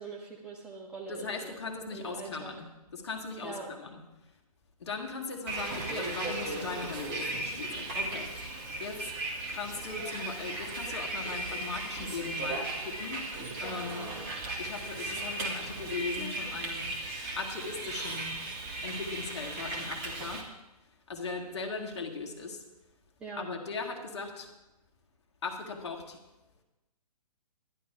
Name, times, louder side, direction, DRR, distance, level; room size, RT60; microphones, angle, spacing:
voice 1, 0.0-1.6 1.9-2.5 3.4-3.7 23.2-23.5, right 4 dB, 5° right, -2 dB, 0.4 m, -42 dB
voice 2, 1.1-4.0 4.8-8.3 8.8-9.1 9.5-13.3 13.6-14.1 14.6-18.4 18.8-20.5 21.1-22.6 23.4-24.5 25.4-26.2, left 4 dB, 45° left, 3 dB, 1.8 m, -39 dB
Bus, 5.5-20.4, right 2 dB, 25° right, 1.8 m, -36 dB
11.0 x 11.0 x 4.8 m, 1.0 s
figure-of-eight pair, 130°, 20 cm